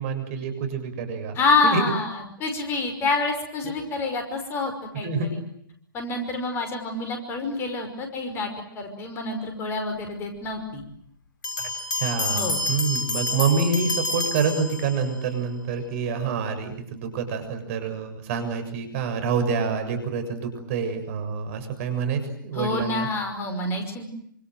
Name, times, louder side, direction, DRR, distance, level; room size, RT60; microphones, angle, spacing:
voice 1, 0.0-1.4 1.6-1.9 3.6-3.7 5.0-5.3 11.6-11.7 12.0-23.1, right 5 dB, 40° right, 8 dB, 7.0 m, -27 dB
voice 2, 1.4-5.1 5.9-10.8 12.3-12.6 22.5-24.0, left 3 dB, 20° left, 5 dB, 5.5 m, -27 dB
Bell, 11.4-15.2, left 2 dB, 60° left, 6.4 m, -29 dB
28.0 x 26.5 x 7.8 m, 0.70 s
figure-of-eight pair, 125°, 11 cm